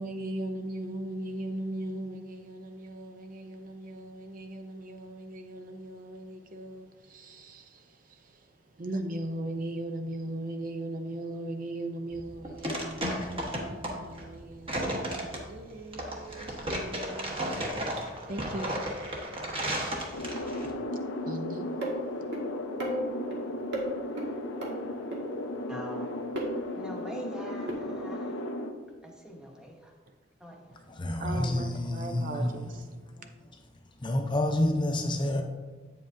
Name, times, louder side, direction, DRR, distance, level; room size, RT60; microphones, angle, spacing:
voice 1, 0.0-18.8 21.0-21.7 30.1-30.2 30.7-32.9, right 1 dB, 45° right, 0.6 m, -39 dB
sound 1, 12.1-20.7, right 1 dB, 30° right, 1.2 m, -34 dB
sound 2, 20.1-28.7, left 1 dB, 85° left, 0.7 m, -35 dB
sound 3, 21.8-21.9 22.3-22.4 22.8-23.4 23.7-23.9 24.2-24.3 24.6-24.7 25.1-25.2 26.4-26.5 27.7-27.8, right 1 dB, 65° right, 1.6 m, -32 dB
voice 2, 25.7-26.1 26.7-28.3 29.0-29.8 30.4-30.6, right 1 dB, 5° right, 1.0 m, -43 dB
voice 3, 30.9-32.6 34.0-35.4, left 1 dB, 25° left, 0.6 m, -28 dB
8.6 x 7.5 x 2.6 m
head